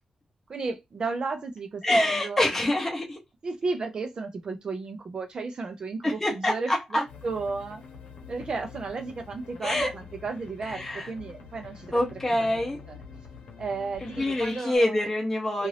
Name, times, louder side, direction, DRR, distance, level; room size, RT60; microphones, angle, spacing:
voice 1, 0.5-2.5 3.4-7.8 8.3-13.0 13.6-15.0 15.6-15.7, right 4 dB, 40° right, 0.6 m, -34 dB
voice 2, 1.8-3.2 6.0-7.0 9.6-9.9 10.7-11.1 11.9-12.8 14.0-15.7, left 1 dB, 10° left, 0.8 m, -26 dB
sound 1, 7.1-14.8, left 5 dB, 90° left, 0.9 m, -46 dB
2.6 x 2.4 x 3.2 m
wide cardioid pair, 165°, 2 cm